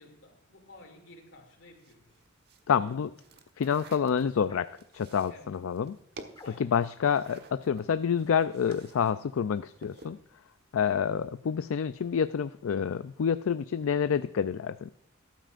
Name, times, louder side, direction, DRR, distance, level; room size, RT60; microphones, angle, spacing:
voice 1, 0.0-2.2 2.7-3.0 3.3-3.4 5.3-5.5 6.4-6.7 10.9-11.1, left 2 dB, 65° left, 4 dB, 2.6 m, -53 dB
sound 1, 1.8-9.1 9.4-10.3, right 2 dB, 50° right, 1.2 m, -52 dB
voice 2, 2.7-3.1 3.6-6.0 6.6-10.2 10.7-14.9, left 7 dB, 80° left, 12 dB, 0.4 m, -28 dB
sound 2, 4.4-4.8 6.3-6.9 8.6-9.1, left 2 dB, 20° left, 1.3 m, -52 dB
14.5 x 12.5 x 2.5 m, 0.78 s
head